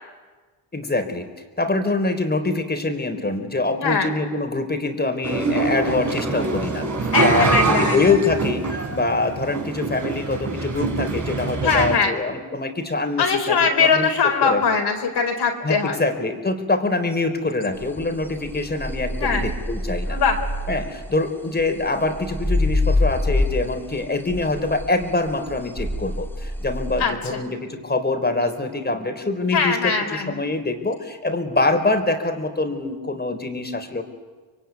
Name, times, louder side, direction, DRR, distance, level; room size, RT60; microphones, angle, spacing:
voice 1, 0.7-1.3 1.6-14.1 14.4-14.6 15.6-20.2 20.7-34.0, left 2 dB, 20° left, 6 dB, 4.2 m, -24 dB
voice 2, 3.7-4.1 7.1-8.0 11.6-12.1 13.2-16.0 19.2-19.4 20.1-20.4 27.0-27.1 29.5-30.4, left 5 dB, 55° left, 3 dB, 4.5 m, -21 dB
sound 1, 5.2-12.0, right 3 dB, 40° right, 5.5 m, -24 dB
sound 2, 17.8-21.2 21.6-27.1, left 1 dB, 5° left, 2.1 m, -26 dB
25.5 x 23.0 x 9.5 m, 1.4 s
cardioid pair, 75°, 47 cm